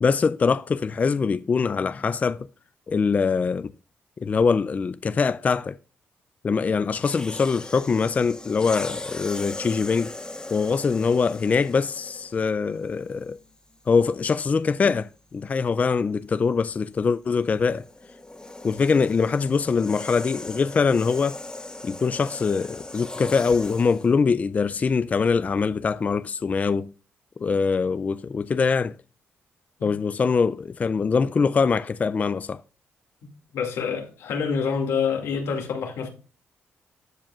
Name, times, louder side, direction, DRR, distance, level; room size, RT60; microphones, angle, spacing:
voice 1, 0.0-2.5 2.9-3.7 4.2-5.8 6.4-10.1 10.5-13.4 13.9-17.8 18.6-21.4 21.8-26.9 27.4-29.0 29.8-32.6, left 5 dB, 35° left, 0.3 m, -23 dB
sound 1, 6.9-12.5 13.3-13.5 17.4-24.1, left 2 dB, 20° left, 1.6 m, -38 dB
voice 2, 33.5-36.1, left 6 dB, 90° left, 2.3 m, -26 dB
14.0 x 5.2 x 2.4 m
cardioid pair, 100°, 5 cm